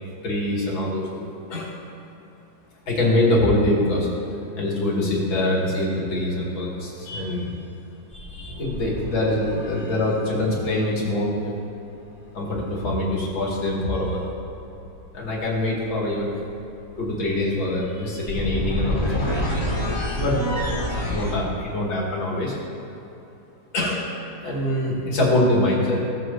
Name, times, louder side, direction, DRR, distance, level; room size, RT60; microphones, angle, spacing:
voice 1, 0.2-1.7 2.9-4.1 4.6-7.5 8.1-11.5 12.3-14.2 15.1-16.3 17.0-19.3 20.1-20.4 21.0-22.5 23.7-24.1 24.4-26.1, left 1 dB, 85° left, -5 dB, 3.0 m, -24 dB
sound 1, 6.7-6.9 8.1-10.2 12.0-21.4, equal, 20° left, 1.8 m, -30 dB
17.0 x 7.8 x 2.7 m, 2.9 s
omnidirectional pair, 2.1 m